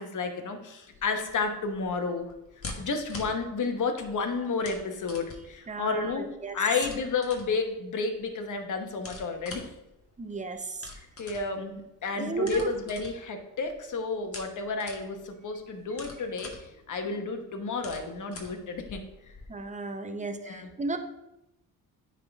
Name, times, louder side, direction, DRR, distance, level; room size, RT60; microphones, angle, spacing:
voice 1, 0.0-2.3 2.8-6.3 6.5-9.7 11.2-19.0 20.3-20.7, left 4 dB, 55° left, 5 dB, 1.1 m, -31 dB
sound 1, 0.9-19.5, left 2 dB, 35° left, 1.4 m, -47 dB
voice 2, 5.7-6.6 10.2-10.9 12.1-12.7 19.5-21.0, right 3 dB, 20° right, 7 dB, 0.7 m, -34 dB
9.6 x 3.7 x 3.5 m, 0.88 s
cardioid pair, 90°, 37 cm